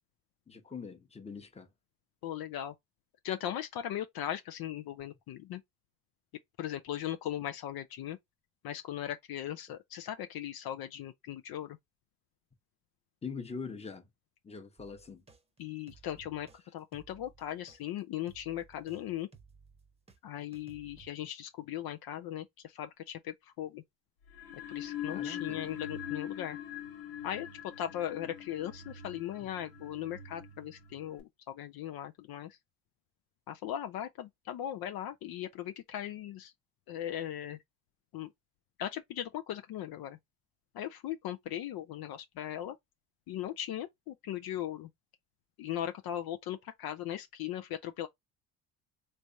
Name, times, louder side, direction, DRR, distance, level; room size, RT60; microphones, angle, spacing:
voice 1, 0.5-1.7 13.2-14.1 14.4-15.2 25.1-25.7, left 5 dB, 15° left, 0.9 m, -43 dB
voice 2, 2.2-2.7 3.2-5.6 6.6-8.2 8.6-11.8 15.6-19.3 20.2-23.8 24.7-26.6 27.2-27.5 27.8-32.6 33.5-36.5 36.9-37.6 38.1-38.3 38.8-40.2 40.7-42.8 43.3-44.9 45.6-48.1, left 11 dB, 60° left, 0.5 m, -38 dB
sound 1, 14.8-20.2 20.5-21.1, right 5 dB, 15° right, 0.9 m, -58 dB
sound 2, 24.3-31.2, left 9 dB, 85° left, 1.4 m, -42 dB
3.3 x 3.2 x 2.6 m
supercardioid pair, 80°, 42 cm